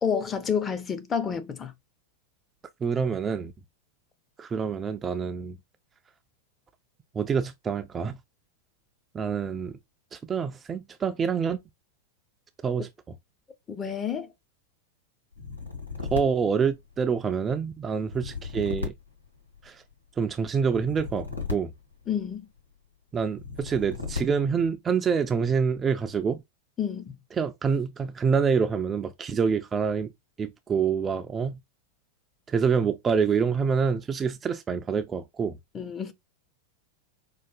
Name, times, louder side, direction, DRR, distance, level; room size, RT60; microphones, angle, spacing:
voice 1, 0.0-1.7 13.7-14.3 22.1-22.5 26.8-27.2 35.7-36.1, left 7 dB, 20° left, 0.6 m, -29 dB
voice 2, 2.8-3.5 4.4-5.6 7.1-8.2 9.1-9.8 10.1-11.6 12.6-13.2 16.1-18.9 19.6-19.8 20.2-21.7 23.1-26.4 27.4-30.1 30.4-31.6 32.5-35.6, right 6 dB, 20° right, 0.3 m, -26 dB
sound 1, 15.3-17.3 18.0-19.9 20.7-22.6 23.3-24.7, left 5 dB, 85° left, 0.9 m, -36 dB
4.7 x 2.3 x 2.4 m
figure-of-eight pair, 90°, 0 cm